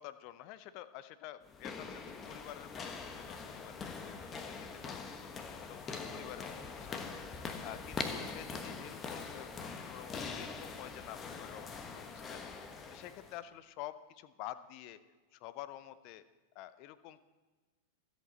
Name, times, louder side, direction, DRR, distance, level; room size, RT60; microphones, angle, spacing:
voice 1, 0.0-5.0 5.4-7.0 7.4-12.5 12.9-15.0 15.3-16.2 16.5-17.2, left 13 dB, 45° left, 15 dB, 0.7 m, -49 dB
sound 1, 1.4-13.4, left 4 dB, 25° left, 1.2 m, -43 dB
25.0 x 8.3 x 4.1 m, 1.3 s
figure-of-eight pair, 90°, 0 cm